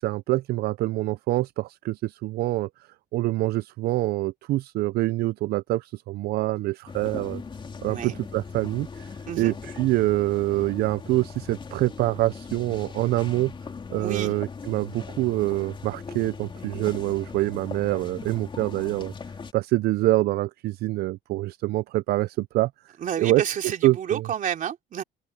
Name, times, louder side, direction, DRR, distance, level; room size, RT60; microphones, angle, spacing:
voice 1, 0.0-2.7 3.1-7.4 7.8-9.1 9.4-13.5 13.9-19.1 19.5-22.7 23.2-23.4 23.8-24.2, right 17 dB, 70° right, 0.4 m, -25 dB
sound 1, 6.9-19.5, left 5 dB, 30° left, 3.3 m, -39 dB
voice 2, 7.8-8.2 9.3-9.5 14.0-14.3 23.0-25.0, right 9 dB, 50° right, 3.0 m, -30 dB
open air
cardioid pair, 110°, 17 cm